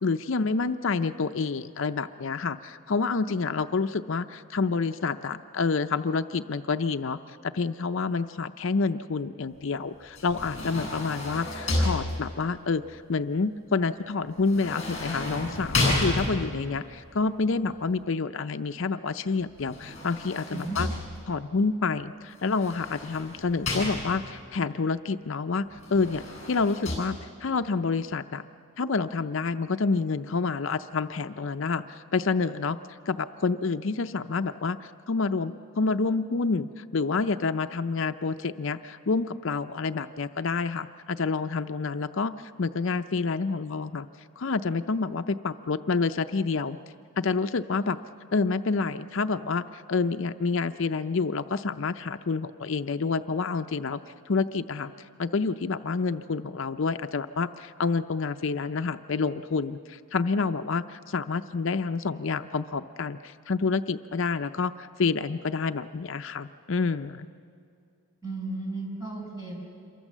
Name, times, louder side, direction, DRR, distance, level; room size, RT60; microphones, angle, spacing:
voice 1, 0.0-20.9 21.3-28.4 28.8-32.8 33.1-44.1 44.4-46.8 47.2-48.0 48.3-54.0 54.3-54.9 55.2-67.3, left 4 dB, 60° left, 9 dB, 0.5 m, -28 dB
sound 1, 10.1-12.6 14.5-16.7 19.6-21.4 22.4-24.4 25.8-27.0, left 2 dB, 30° left, 6.9 m, -31 dB
voice 2, 68.2-69.6, right 2 dB, 15° right, -2 dB, 6.3 m, -34 dB
27.0 x 23.5 x 7.4 m, 2.4 s
head